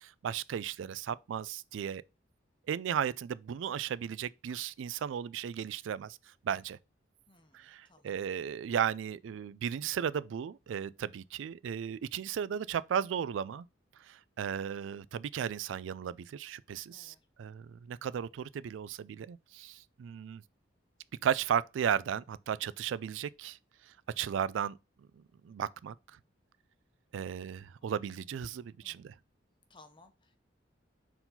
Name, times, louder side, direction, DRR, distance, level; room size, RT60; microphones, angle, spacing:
voice 1, 0.0-2.0 2.7-6.2 6.4-6.8 7.5-13.7 14.0-20.4 21.2-23.6 23.9-24.8 25.2-26.0 27.1-29.1, right 8 dB, 80° right, 0.3 m, -35 dB
voice 2, 7.3-8.1 16.9-17.3 27.8-28.0 28.8-29.2 29.7-30.4, left 2 dB, 25° left, 0.9 m, -61 dB
4.6 x 3.9 x 5.6 m
head